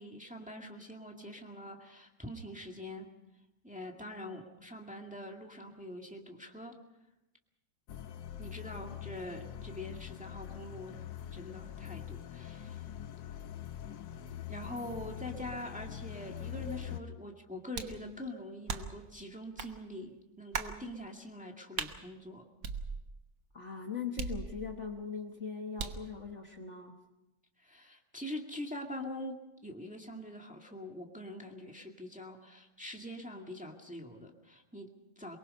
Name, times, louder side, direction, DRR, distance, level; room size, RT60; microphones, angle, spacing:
voice 1, 0.0-3.1 3.6-6.8 8.4-11.0 11.3-12.8 14.5-22.5 27.6-35.4, left 1 dB, 5° right, 1 dB, 1.9 m, -44 dB
sound 1, 7.9-17.0, left 10 dB, 75° left, 1.5 m, -44 dB
voice 2, 14.6-15.0 23.5-27.0, left 6 dB, 45° left, 3 dB, 1.4 m, -41 dB
sound 2, 17.7-18.0 18.7-19.1 19.6-19.7 20.5-20.8 21.8-22.0 22.6-23.3 24.2-24.9 25.8-26.1, right 5 dB, 75° right, 1.9 m, -38 dB
23.5 x 22.5 x 5.5 m, 0.96 s
omnidirectional pair, 2.0 m